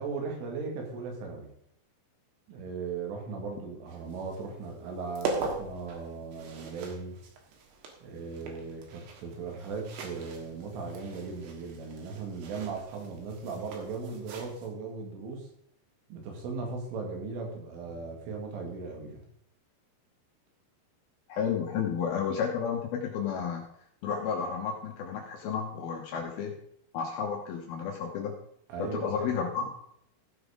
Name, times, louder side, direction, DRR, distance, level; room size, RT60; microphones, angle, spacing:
voice 1, 0.0-1.5 2.5-7.2 8.0-15.5 16.1-19.2 28.7-29.4, right 4 dB, 90° right, 1 dB, 4.7 m, -38 dB
sound 1, 3.9-14.7, right 4 dB, 70° right, 3.4 m, -41 dB
voice 2, 21.3-23.6 24.0-26.6 26.9-28.3 28.8-29.7, left 7 dB, 70° left, 1 dB, 2.4 m, -32 dB
15.5 x 5.7 x 5.0 m, 0.73 s
omnidirectional pair, 5.4 m